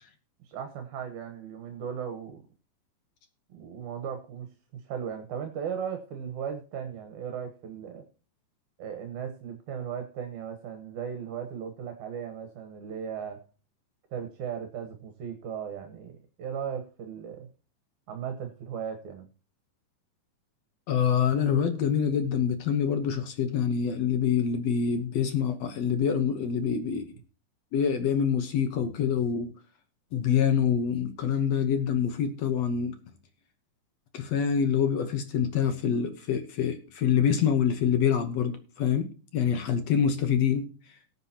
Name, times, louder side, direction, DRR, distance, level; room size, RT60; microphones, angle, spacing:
voice 1, 0.4-2.4 3.5-4.5 4.7-8.0 8.8-13.4 14.1-17.5 18.1-19.3, right 8 dB, 70° right, 7 dB, 2.5 m, -37 dB
voice 2, 20.9-27.1 27.7-29.5 30.1-33.0 34.1-40.7, left 7 dB, 65° left, 8 dB, 1.9 m, -26 dB
19.0 x 7.8 x 2.9 m, 0.36 s
omnidirectional pair, 3.7 m